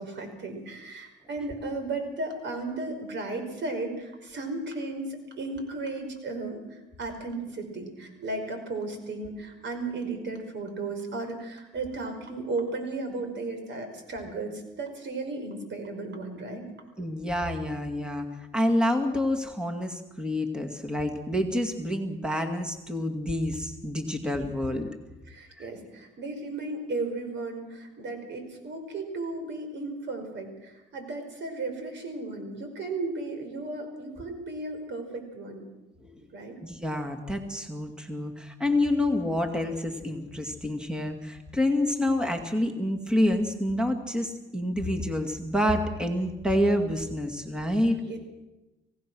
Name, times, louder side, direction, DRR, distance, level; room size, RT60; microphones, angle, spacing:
voice 1, 0.0-16.6 24.7-24.8 25.3-35.6 36.3-36.6 47.9-48.2, right 3 dB, 65° right, 6 dB, 5.2 m, -35 dB
voice 2, 17.0-18.3 18.5-24.9 25.6-25.7 36.6-48.0, left 1 dB, 5° right, 4 dB, 2.3 m, -28 dB
25.5 x 17.5 x 6.3 m, 1.0 s
cardioid pair, 90°, 20 cm